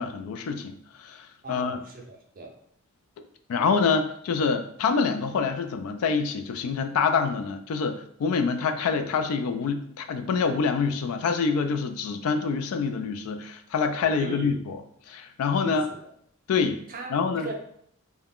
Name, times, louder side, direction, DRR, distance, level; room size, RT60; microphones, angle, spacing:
voice 1, 0.0-1.8 3.5-14.8 15.1-15.9 16.5-16.8 17.1-17.5, left 5 dB, 75° left, 9 dB, 0.3 m, -26 dB
voice 2, 1.4-2.6 14.2-14.6 15.6-16.1 16.9-17.6, right 3 dB, 40° right, 1 dB, 0.5 m, -38 dB
2.3 x 2.2 x 3.4 m, 0.66 s
head